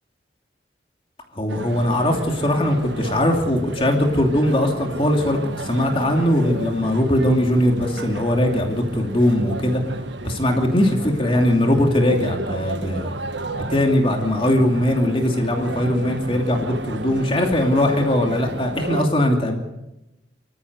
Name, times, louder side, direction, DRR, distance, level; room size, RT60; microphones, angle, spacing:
voice 1, 1.3-9.8 10.2-10.9 11.2-13.1 13.7-19.6, left 1 dB, 30° left, 2 dB, 2.7 m, -20 dB
sound 1, 1.5-19.1, right 2 dB, 80° right, 1.3 m, -33 dB
24.5 x 14.5 x 8.2 m, 0.96 s
head